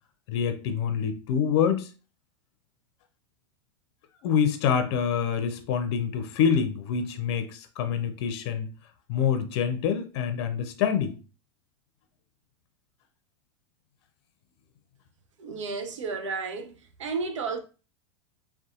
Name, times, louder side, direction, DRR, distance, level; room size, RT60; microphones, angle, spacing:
voice 1, 0.3-1.9 4.2-8.7 9.1-11.1, left 7 dB, 65° left, 0.5 m, -26 dB
voice 2, 15.4-16.7 17.0-17.6, right 4 dB, 85° right, 0.5 m, -32 dB
2.6 x 2.3 x 2.4 m
hypercardioid pair, 100°, 15 cm